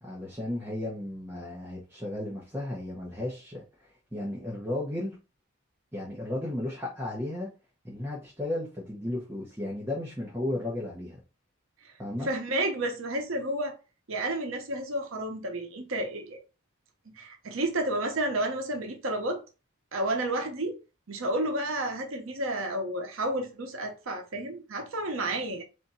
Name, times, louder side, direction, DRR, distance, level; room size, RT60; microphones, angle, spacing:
voice 1, 0.0-3.6 4.1-5.1 5.9-7.5 7.8-11.2 12.0-12.3, left 1 dB, 10° right, 0.9 m, -34 dB
voice 2, 12.2-13.7 14.1-16.4 17.1-19.4 19.9-20.8 21.1-25.6, right 1 dB, 70° right, 0.8 m, -31 dB
3.4 x 2.6 x 4.2 m
head